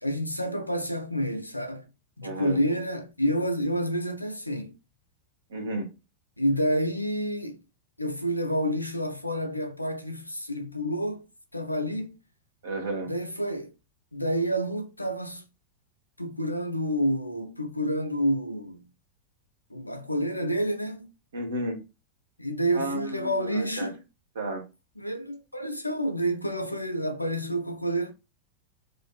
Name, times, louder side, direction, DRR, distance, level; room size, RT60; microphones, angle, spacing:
voice 1, 0.0-1.9 2.2-4.7 6.4-7.6 8.0-11.3 11.5-12.2 13.0-13.7 14.1-15.4 16.2-18.8 19.7-21.1 22.4-23.9 25.0-28.1, equal, 85° left, 0.4 m, -29 dB
voice 2, 2.2-2.6 5.5-5.9 12.6-13.1 21.3-21.8 22.7-23.9 24.3-24.6, right 1 dB, 65° right, 0.8 m, -32 dB
2.5 x 2.4 x 2.3 m
figure-of-eight pair, 90°, 0 cm